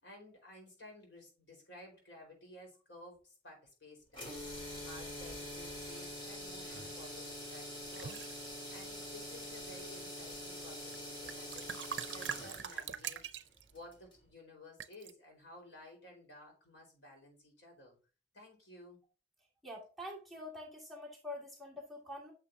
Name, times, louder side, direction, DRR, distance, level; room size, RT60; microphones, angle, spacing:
voice 1, 0.0-4.4 4.8-8.2 8.7-13.2 13.7-18.0 18.3-19.0, left 1 dB, 85° left, 4.5 m, -55 dB
sound 1, 4.1-14.2, left 1 dB, 30° left, 3.4 m, -45 dB
sound 2, 7.9-8.3 9.1-9.6 10.9-11.0 11.2-13.7 14.8-15.1, right 8 dB, 75° right, 0.5 m, -42 dB
voice 2, 19.6-22.3, left 1 dB, ahead, 2.3 m, -46 dB
9.3 x 6.5 x 2.7 m
head